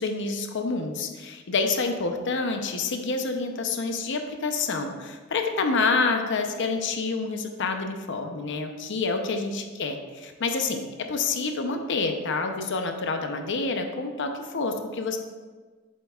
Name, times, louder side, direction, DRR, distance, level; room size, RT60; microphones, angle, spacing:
voice 1, 0.0-15.2, left 4 dB, 60° left, 5 dB, 0.7 m, -28 dB
8.1 x 7.4 x 2.4 m, 1.4 s
head